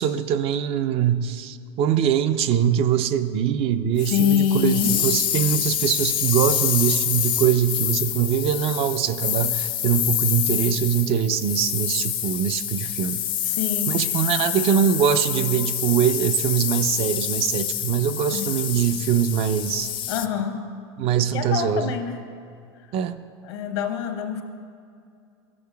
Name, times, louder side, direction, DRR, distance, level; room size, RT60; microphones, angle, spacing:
voice 1, 0.0-13.2 13.9-19.9 21.0-21.9 22.9-23.2, right 9 dB, 45° right, 11 dB, 0.4 m, -23 dB
sound 1, 4.0-20.3, left 11 dB, 40° left, 0.4 m, -27 dB
voice 2, 4.1-5.1 13.4-14.0 18.3-18.5 20.1-20.6 21.3-22.2 23.5-24.4, left 8 dB, 75° left, 4 dB, 0.9 m, -25 dB
13.0 x 8.5 x 2.3 m, 2.4 s
supercardioid pair, 105°, 13 cm